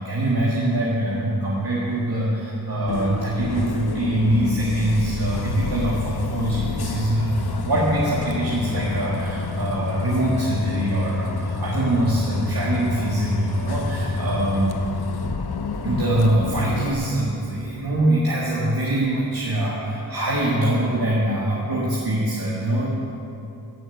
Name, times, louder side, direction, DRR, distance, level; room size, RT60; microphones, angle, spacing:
voice 1, 0.0-14.7 15.1-15.2 15.8-22.9, right 1 dB, 75° right, -6 dB, 2.0 m, -23 dB
Bus, 2.9-16.9, left 4 dB, 90° left, 0.8 m, -29 dB
15.5 x 6.3 x 8.0 m, 2.8 s
wide cardioid pair, 55°, 37 cm